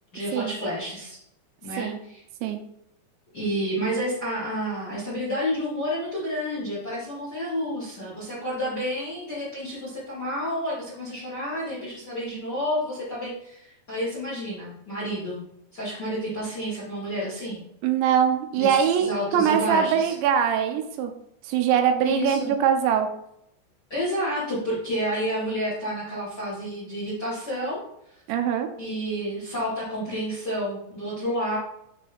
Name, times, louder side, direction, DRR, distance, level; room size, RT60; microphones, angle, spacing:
voice 1, 0.1-1.2 1.6-2.2 3.3-15.4 15.7-17.6 18.6-20.1 22.0-22.5 23.9-27.8 28.8-31.6, equal, 35° left, -6 dB, 1.6 m, -30 dB
voice 2, 17.8-21.1 21.5-23.1 28.3-28.7, right 8 dB, 85° right, 5 dB, 3.0 m, -22 dB
9.3 x 3.9 x 3.5 m, 0.77 s
omnidirectional pair, 5.2 m